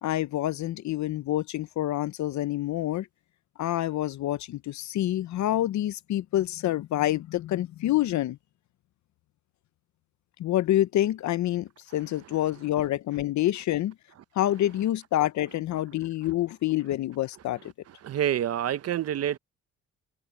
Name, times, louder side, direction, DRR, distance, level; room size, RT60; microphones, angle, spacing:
voice 1, 0.0-3.1 3.6-8.4 10.4-13.9 14.4-17.7, left 14 dB, 70° left, 0.7 m, -27 dB
voice 2, 18.0-19.4, right 10 dB, 55° right, 0.7 m, -27 dB
open air
cardioid pair, 90°, 30 cm